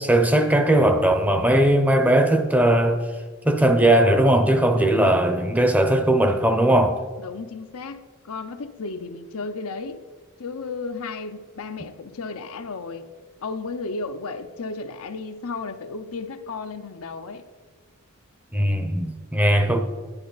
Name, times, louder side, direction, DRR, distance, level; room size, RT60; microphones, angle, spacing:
voice 1, 0.1-3.1 3.4-7.0 18.5-19.8, right 1 dB, 5° right, 0.7 m, -19 dB
voice 2, 4.7-5.2 7.2-10.0 10.4-13.1 13.4-17.5 19.5-19.8, left 4 dB, 70° left, 0.7 m, -34 dB
10.5 x 10.5 x 4.0 m
head